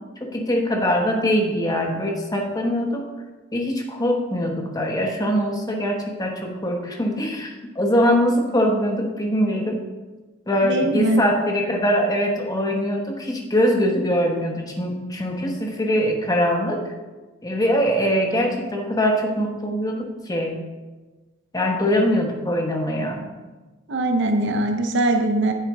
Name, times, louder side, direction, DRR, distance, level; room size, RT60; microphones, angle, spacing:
voice 1, 0.2-3.0 3.5-9.8 10.5-16.8 17.4-20.6 21.5-23.2, equal, 20° left, 2 dB, 1.1 m, -22 dB
voice 2, 10.6-11.2 23.9-25.5, right 1 dB, 55° right, 4 dB, 0.8 m, -21 dB
9.5 x 7.9 x 3.5 m, 1.2 s
head